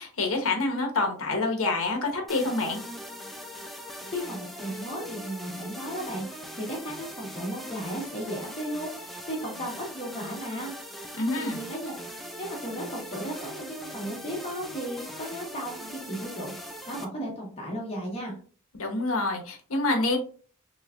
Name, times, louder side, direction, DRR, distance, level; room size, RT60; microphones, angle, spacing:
voice 1, 0.0-2.8 11.1-11.6 18.7-20.2, left 2 dB, 70° left, 3 dB, 0.9 m, -27 dB
sound 1, 2.3-17.0, equal, ahead, 0.4 m, -41 dB
voice 2, 4.1-10.7 11.4-12.0 12.4-18.4, equal, 30° left, -2 dB, 1.2 m, -35 dB
3.5 x 3.1 x 2.4 m, 0.42 s
head